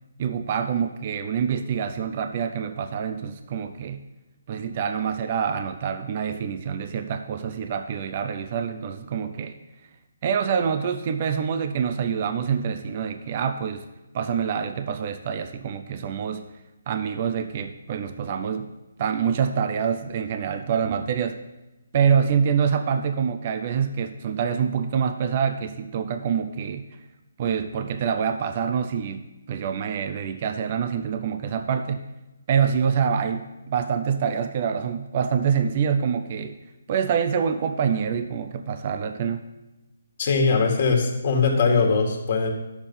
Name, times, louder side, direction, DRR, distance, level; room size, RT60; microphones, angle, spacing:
voice 1, 0.2-4.0 4.5-9.5 10.2-13.8 14.1-16.5 16.9-18.7 19.0-21.4 21.9-26.8 27.4-32.0 32.5-36.6 36.9-39.4, right 7 dB, 35° right, 8 dB, 0.5 m, -26 dB
voice 2, 40.2-42.5, left 4 dB, 40° left, 1 dB, 1.8 m, -21 dB
10.0 x 7.1 x 5.5 m, 1.0 s
hypercardioid pair, 165°, 0 cm